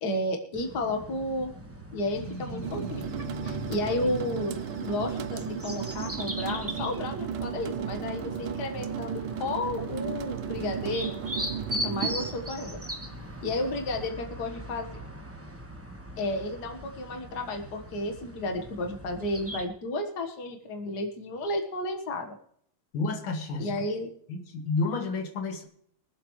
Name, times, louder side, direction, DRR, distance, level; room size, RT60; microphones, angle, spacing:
voice 1, 0.0-1.5 1.9-3.1 3.4-11.2 11.7-12.8 13.4-15.0 16.2-22.3 23.6-24.1, left 1 dB, 55° left, 4 dB, 1.9 m, -32 dB
sound 1, 0.5-19.7, equal, 10° right, 0.8 m, -40 dB
sound 2, 2.1-6.5, equal, 45° right, 2.3 m, -41 dB
sound 3, 2.6-14.1, right 8 dB, 85° right, 1.5 m, -35 dB
voice 2, 22.9-23.8 24.3-25.6, left 3 dB, 90° left, 4 dB, 2.4 m, -30 dB
23.5 x 8.0 x 3.2 m, 0.65 s
omnidirectional pair, 2.2 m